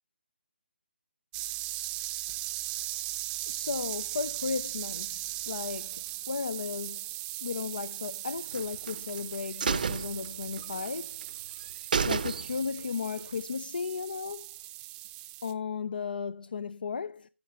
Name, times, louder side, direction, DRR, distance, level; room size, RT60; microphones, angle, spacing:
sound 1, 1.3-15.5, right 16 dB, 15° right, 0.7 m, -38 dB
voice 1, 3.5-7.1 7.4-11.2 12.0-14.6 15.4-17.3, left 5 dB, 50° left, 0.5 m, -35 dB
sound 2, 8.5-9.2 9.6-10.9 11.2-11.3 11.6-11.7 11.9-12.8 13.2-13.3, right 6 dB, 45° right, 0.7 m, -31 dB
14.5 x 6.5 x 4.1 m
figure-of-eight pair, 145°, 6 cm